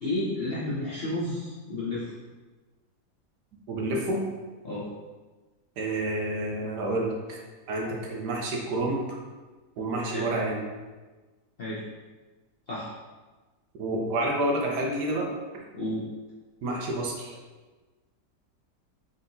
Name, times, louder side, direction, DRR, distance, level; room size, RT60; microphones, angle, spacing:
voice 1, 0.0-2.1 4.6-4.9 10.1-10.3 11.6-11.8 12.7-12.9 15.7-16.1, left 1 dB, 55° left, -8 dB, 0.7 m, -31 dB
voice 2, 3.7-4.2 5.8-7.4 7.7-9.2 9.8-10.6 13.8-15.3 16.6-17.3, right 1 dB, 75° right, -1 dB, 1.3 m, -29 dB
4.1 x 3.8 x 2.6 m, 1.3 s
omnidirectional pair, 1.8 m